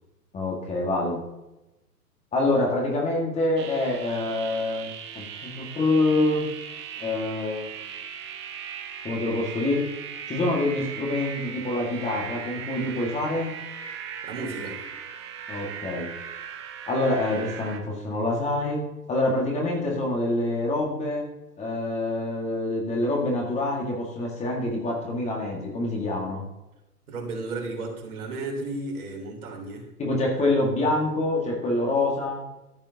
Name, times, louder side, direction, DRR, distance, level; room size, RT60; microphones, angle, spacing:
voice 1, 0.3-1.2 2.3-6.4 7.0-7.7 9.0-9.8 10.3-13.5 15.5-16.1 16.9-21.2 21.6-26.4 30.0-32.4, left 2 dB, 15° left, -2 dB, 1.9 m, -26 dB
sound 1, 3.6-17.8, right 8 dB, 20° right, 0.5 m, -38 dB
voice 2, 14.2-14.8 27.1-29.9, right 2 dB, 65° right, -1 dB, 3.7 m, -34 dB
14.0 x 7.2 x 2.9 m, 0.95 s
figure-of-eight pair, 120°, 47 cm